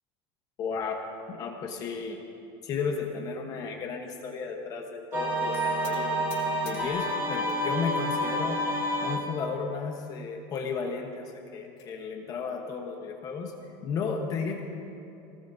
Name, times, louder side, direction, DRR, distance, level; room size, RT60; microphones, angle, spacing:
voice 1, 0.6-1.0 1.3-2.2 2.6-6.2 6.6-8.6 9.0-13.5 13.8-14.6, left 5 dB, 30° left, 3 dB, 1.1 m, -34 dB
sound 1, 5.1-9.4, equal, 20° right, 2.1 m, -29 dB
sound 2, 5.8-7.6 8.0-8.6 9.2-9.3 9.6-9.7 10.0-10.1 11.3-11.9, left 10 dB, 85° left, 3.9 m, -51 dB
26.5 x 18.5 x 2.7 m, 2.8 s
cardioid pair, 170°, 12 cm